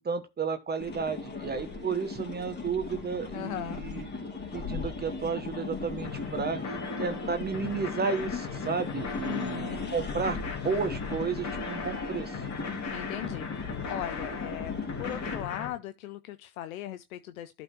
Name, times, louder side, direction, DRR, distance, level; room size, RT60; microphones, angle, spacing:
voice 1, 0.0-4.1 4.5-6.6 7.0-10.4 10.6-12.4, right 5 dB, 25° right, 1.2 m, -32 dB
sound 1, 0.8-15.4, left 3 dB, 25° left, 2.9 m, -37 dB
voice 2, 3.3-3.8 9.2-9.9 12.9-14.7 15.0-17.6, left 13 dB, 75° left, 0.7 m, -38 dB
sound 2, 6.0-15.7, left 6 dB, 40° left, 2.9 m, -39 dB
12.0 x 4.0 x 4.4 m
hypercardioid pair, 80°, 42 cm